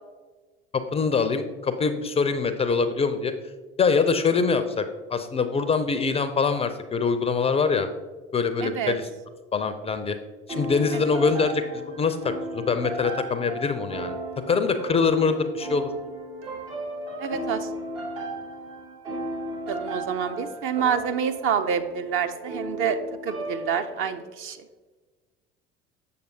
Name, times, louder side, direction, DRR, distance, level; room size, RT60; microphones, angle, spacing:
voice 1, 0.7-3.3 3.8-7.9 8.3-9.1 9.5-10.2 10.5-14.2 14.5-15.9, left 5 dB, 20° left, 10 dB, 0.4 m, -24 dB
voice 2, 8.6-9.0 10.9-11.0 17.2-17.7 19.7-23.0 23.2-24.6, right 7 dB, 45° right, 8 dB, 0.6 m, -27 dB
sound 1, 10.5-24.2, right 1 dB, 75° right, 2.0 m, -35 dB
7.5 x 6.6 x 2.7 m, 1.3 s
figure-of-eight pair, 60°, 30 cm